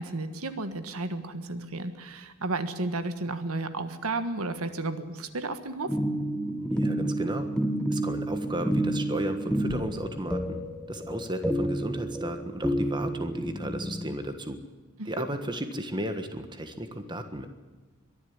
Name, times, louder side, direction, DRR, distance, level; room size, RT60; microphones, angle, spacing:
voice 1, 0.0-5.9 15.0-15.2, right 2 dB, 75° right, 10 dB, 1.6 m, -33 dB
sound 1, 5.9-14.1, right 1 dB, 5° left, 1.3 m, -30 dB
voice 2, 6.6-7.5 7.9-10.6 10.9-14.6 15.0-17.5, right 1 dB, 20° right, 7 dB, 1.4 m, -34 dB
23.0 x 11.5 x 9.7 m, 1.3 s
head